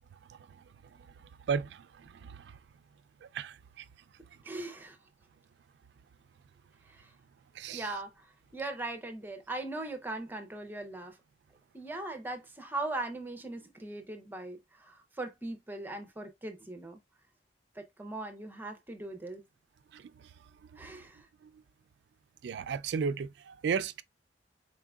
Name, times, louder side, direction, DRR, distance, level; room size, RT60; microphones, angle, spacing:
voice 1, 0.3-2.6 3.2-3.9 4.3-4.4 7.5-7.9 19.9-20.3 20.7-20.8 21.4-21.6 22.4-24.0, right 6 dB, 70° right, 0.3 m, -36 dB
voice 2, 4.4-5.0 6.9-7.1 7.7-11.2 11.7-17.0 17.8-19.4 20.8-21.3, right 2 dB, 10° right, 0.7 m, -40 dB
4.3 x 3.6 x 2.3 m
head